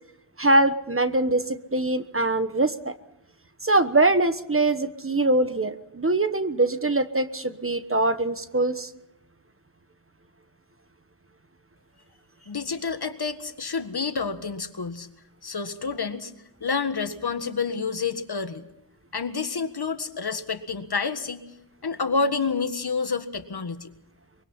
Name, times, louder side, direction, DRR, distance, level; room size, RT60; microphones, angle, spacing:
voice 1, 0.4-2.9 3.6-8.9, right 2 dB, 30° right, 10 dB, 1.2 m, -23 dB
voice 2, 12.4-15.1 15.4-16.3 16.6-18.7 19.1-21.4 21.8-23.9, left 5 dB, 55° left, 9 dB, 1.7 m, -29 dB
24.0 x 23.5 x 5.7 m, 0.85 s
wide cardioid pair, 90°, 46 cm